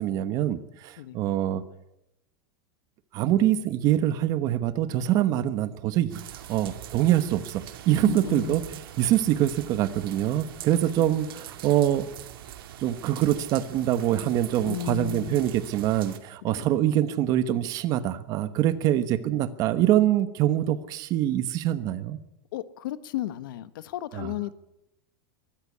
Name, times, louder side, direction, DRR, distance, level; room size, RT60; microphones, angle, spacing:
voice 1, 0.0-1.6 3.1-12.1 12.8-22.2 24.1-24.3, right 12 dB, 30° right, 13 dB, 1.1 m, -24 dB
sound 1, 6.1-16.2, right 11 dB, 90° right, 2.4 m, -43 dB
voice 2, 8.0-8.6 10.7-11.2 14.6-15.3 16.5-16.7 18.8-18.9 22.5-24.5, left 14 dB, 70° left, 14 dB, 1.2 m, -34 dB
23.5 x 13.5 x 8.5 m, 0.88 s
supercardioid pair, 170°, 12 cm